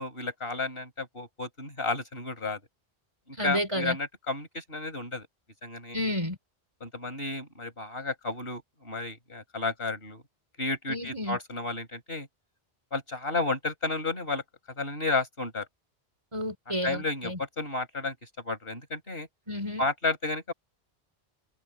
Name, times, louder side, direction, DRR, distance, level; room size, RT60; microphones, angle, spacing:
voice 1, 0.0-2.6 3.3-5.3 5.6-6.0 6.8-10.2 10.6-12.3 12.9-14.4 14.8-15.7 16.8-18.2 18.4-19.3 19.8-20.5, left 3 dB, 65° left, 5.6 m, -32 dB
voice 2, 3.4-4.0 5.9-6.4 10.9-11.4 16.3-17.4 19.5-19.9, left 1 dB, 30° right, 5.2 m, -31 dB
omnidirectional pair, 1.1 m